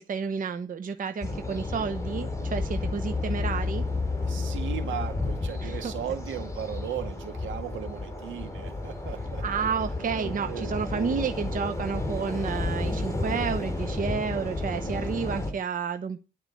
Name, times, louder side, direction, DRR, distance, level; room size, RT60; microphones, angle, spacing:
voice 1, 0.0-3.8 5.6-5.9 9.4-16.2, right 6 dB, 45° right, 8 dB, 1.0 m, -31 dB
sound 1, 1.2-15.5, left 2 dB, 15° left, 3.6 m, -31 dB
voice 2, 4.2-9.4 10.1-11.3, right 9 dB, 75° right, 6 dB, 2.3 m, -37 dB
11.0 x 4.8 x 8.4 m, 0.30 s
cardioid pair, 90°, 20 cm